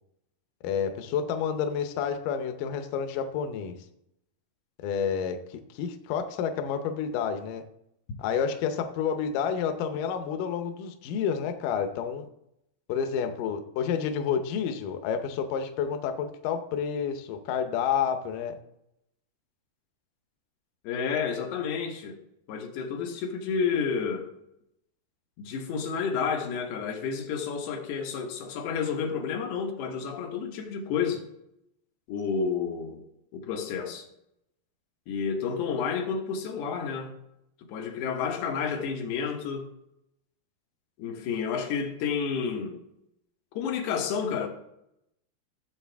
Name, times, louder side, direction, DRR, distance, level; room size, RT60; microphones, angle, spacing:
voice 1, 0.6-3.8 4.8-7.6 8.2-12.3 12.9-18.5, left 7 dB, 75° left, 2.1 m, -29 dB
voice 2, 20.9-22.2 22.5-24.3 25.4-31.2 32.1-33.0 33.3-34.1 35.1-37.1 37.7-39.7 41.0-42.8 43.6-44.5, left 6 dB, 90° left, 3.3 m, -30 dB
15.0 x 7.7 x 3.5 m
omnidirectional pair, 4.4 m